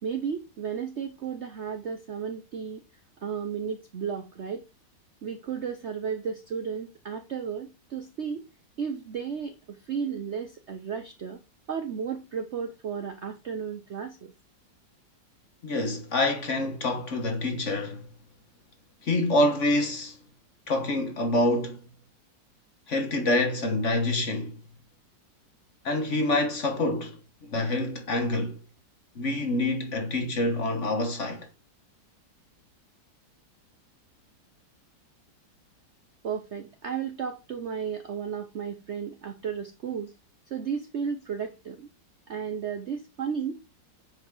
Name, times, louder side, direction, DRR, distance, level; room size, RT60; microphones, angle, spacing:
voice 1, 0.0-2.8 3.2-4.6 5.2-8.4 8.8-11.4 11.7-14.3 36.2-40.1 40.5-41.9 42.3-43.6, right 7 dB, 55° right, 0.8 m, -33 dB
voice 2, 15.6-18.1 19.0-20.2 20.7-21.8 22.9-24.6 25.8-27.2 27.5-28.6 29.1-31.5, left 2 dB, 45° left, 1.5 m, -26 dB
7.9 x 4.9 x 3.7 m
omnidirectional pair, 2.0 m